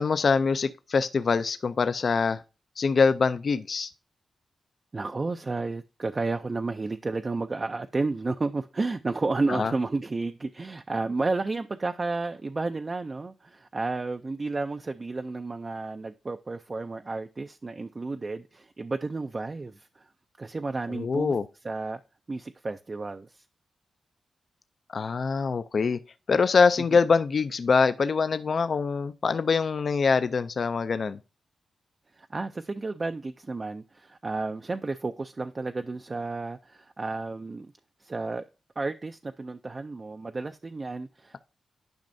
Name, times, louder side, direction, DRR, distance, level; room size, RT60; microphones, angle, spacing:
voice 1, 0.0-2.4 2.8-3.9 9.5-9.7 20.9-21.4 24.9-26.0 26.3-31.2, left 5 dB, 55° left, 0.4 m, -24 dB
voice 2, 4.9-20.1 20.4-21.3 21.6-22.0 22.3-23.5 32.1-37.7 38.0-38.5 38.8-41.4, right 3 dB, 35° right, 0.4 m, -32 dB
10.5 x 5.3 x 2.6 m
cardioid pair, 80°, 0 cm